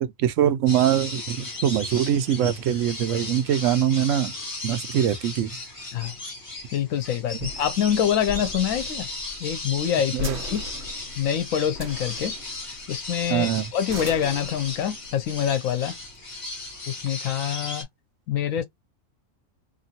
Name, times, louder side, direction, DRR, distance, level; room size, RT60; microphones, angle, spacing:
voice 1, 0.0-4.3 4.6-5.5 10.1-10.4 13.3-13.7, right 10 dB, 75° right, 0.9 m, -23 dB
sound 1, 0.7-17.8, left 2 dB, 25° left, 1.1 m, -36 dB
sound 2, 3.8-16.8, equal, 55° right, 1.2 m, -41 dB
voice 2, 6.7-9.1 9.4-10.6 11.2-12.3 12.9-15.9 16.9-17.9 18.3-18.6, left 9 dB, 80° left, 1.0 m, -25 dB
2.9 x 2.6 x 2.7 m
omnidirectional pair, 1.4 m